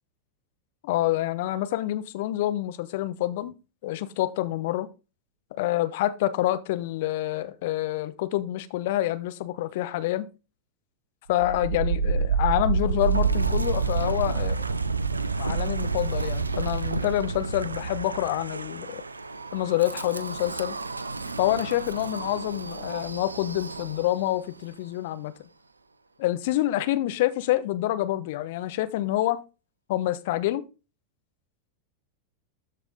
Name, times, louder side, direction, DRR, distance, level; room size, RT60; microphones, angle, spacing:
voice 1, 0.8-3.5 3.8-4.9 5.5-10.3 11.3-14.7 15.4-19.0 19.5-20.7 21.4-25.3 26.2-29.4 29.9-30.6, left 14 dB, 50° left, 0.9 m, -27 dB
Wind, 11.3-24.3, right 5 dB, 80° right, 0.5 m, -29 dB
13.0 x 4.7 x 3.8 m
figure-of-eight pair, 90°, 0 cm